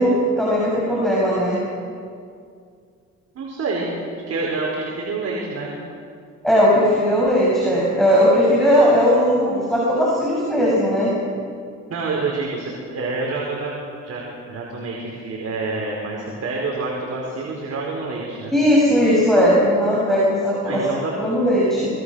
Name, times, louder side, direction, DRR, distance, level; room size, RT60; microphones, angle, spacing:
voice 1, 0.0-1.6 6.4-11.2 18.5-20.8 21.2-21.9, equal, ahead, -5 dB, 7.4 m, -18 dB
voice 2, 3.3-3.9 4.3-5.8 11.9-13.7 14.0-14.2 14.5-18.5 20.6-21.1, right 3 dB, 55° right, -2 dB, 4.9 m, -27 dB
26.0 x 21.0 x 6.5 m, 2.3 s
cardioid pair, 90°, 30 cm